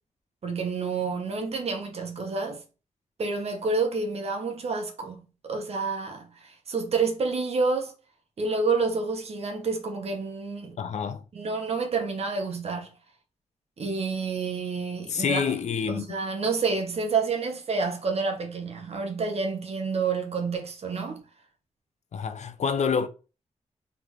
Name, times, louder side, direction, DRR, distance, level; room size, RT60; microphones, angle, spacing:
voice 1, 0.4-2.6 3.2-7.9 8.4-10.8 11.3-12.9 13.8-15.5 15.9-21.2, right 4 dB, 60° right, 1.0 m, -29 dB
voice 2, 10.8-11.2 15.1-16.1 22.1-23.1, left 6 dB, 70° left, 0.6 m, -27 dB
3.9 x 3.4 x 3.0 m
wide cardioid pair, 140°, 12 cm